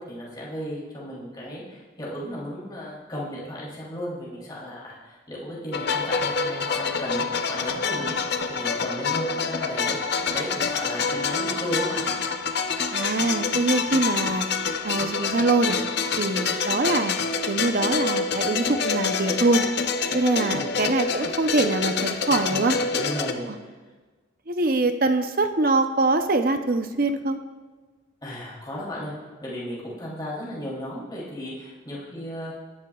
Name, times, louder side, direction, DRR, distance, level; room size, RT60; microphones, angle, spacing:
voice 1, 0.1-8.1 8.5-12.0 20.5-20.7 22.5-23.7 28.2-29.1 29.4-32.5, equal, 20° left, -6 dB, 3.1 m, -34 dB
sound 1, 5.7-23.3, left 5 dB, 50° left, 0.7 m, -27 dB
voice 2, 12.9-14.5 14.8-15.8 16.2-17.1 17.5-19.6 20.1-22.8 23.5-23.6 24.5-27.4, right 2 dB, 45° right, 7 dB, 0.7 m, -23 dB
19.0 x 11.0 x 2.4 m, 1.3 s
head